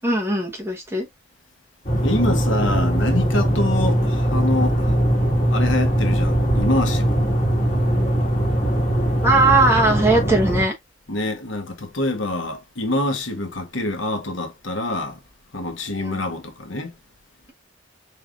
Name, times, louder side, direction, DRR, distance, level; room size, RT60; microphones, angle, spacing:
voice 1, 0.0-1.1 9.2-10.7 16.0-16.2, right 2 dB, 15° right, 1.2 m, -19 dB
sound 1, 1.9-10.6, equal, 35° left, 1.9 m, -20 dB
voice 2, 2.0-4.9 5.5-7.2 11.1-15.2 15.5-16.9, left 1 dB, 85° left, 1.3 m, -25 dB
4.7 x 3.4 x 2.5 m
head